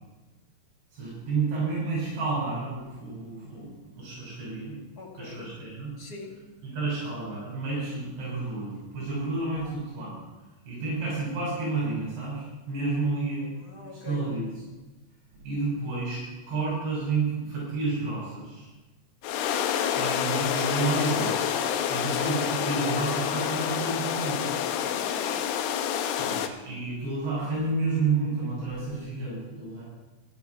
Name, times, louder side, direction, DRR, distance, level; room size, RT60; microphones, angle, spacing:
voice 1, 0.9-4.7 5.2-5.9 6.6-10.2 10.7-13.5 13.9-14.4 15.4-18.7 19.9-21.5 21.9-24.5 26.2-29.8, right 3 dB, 70° right, -8 dB, 8.5 m, -30 dB
voice 2, 5.0-5.5 6.0-6.4 9.5-9.7 13.6-14.3 24.8-25.4, left 3 dB, 35° left, -1 dB, 1.7 m, -44 dB
sound 1, 19.2-26.5, left 9 dB, 80° left, 2.6 m, -28 dB
14.0 x 11.5 x 6.0 m, 1.2 s
omnidirectional pair, 5.1 m